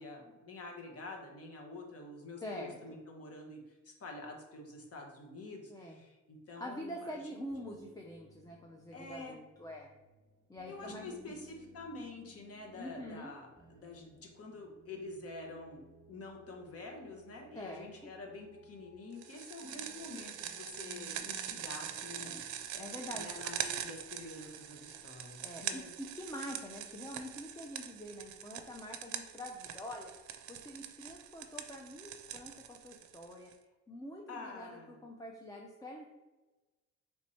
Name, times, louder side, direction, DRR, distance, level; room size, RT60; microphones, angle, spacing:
voice 1, 0.0-7.2 8.9-9.4 10.7-22.4 22.7-25.9 34.3-35.0, left 3 dB, 50° left, 1 dB, 1.1 m, -47 dB
voice 2, 2.4-3.0 5.7-6.0 6.6-9.9 10.5-11.4 12.8-13.3 17.6-18.1 22.2-22.4 22.8-23.3 25.4-30.1 30.5-33.5 33.9-36.1, left 1 dB, 10° left, 0 dB, 0.5 m, -45 dB
sound 1, 6.7-22.7, right 1 dB, 10° right, 1.0 m, -60 dB
sound 2, 19.2-33.5, right 10 dB, 70° right, 0.5 m, -43 dB
3.4 x 3.1 x 4.1 m, 1.1 s
cardioid pair, 90°, 30 cm